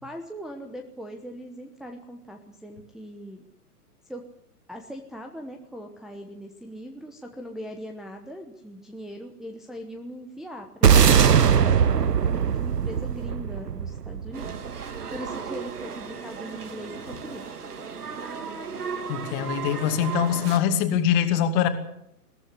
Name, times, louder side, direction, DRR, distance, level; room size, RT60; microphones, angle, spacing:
voice 1, 0.0-3.4 4.1-4.2 4.7-11.3 11.6-14.5 15.1-17.5, equal, ahead, 1 dB, 1.0 m, -40 dB
sound 1, 10.8-15.3, right 7 dB, 90° right, 0.9 m, -20 dB
sound 2, 14.3-20.6, right 6 dB, 70° right, 2.9 m, -35 dB
voice 2, 19.1-21.7, left 9 dB, 35° left, 7 dB, 2.5 m, -23 dB
21.5 x 15.0 x 9.7 m, 0.78 s
figure-of-eight pair, 125°, 47 cm